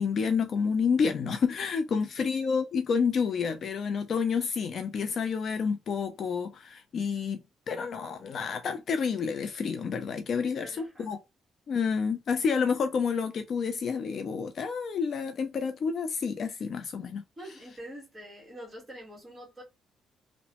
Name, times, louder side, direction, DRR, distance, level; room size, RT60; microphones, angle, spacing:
voice 1, 0.0-7.4 7.7-11.2 11.7-17.2, left 5 dB, 45° left, 0.3 m, -29 dB
voice 2, 10.4-11.1 17.4-19.6, equal, 10° right, 1.3 m, -45 dB
2.9 x 2.0 x 2.8 m
cardioid pair, 160°, 0 cm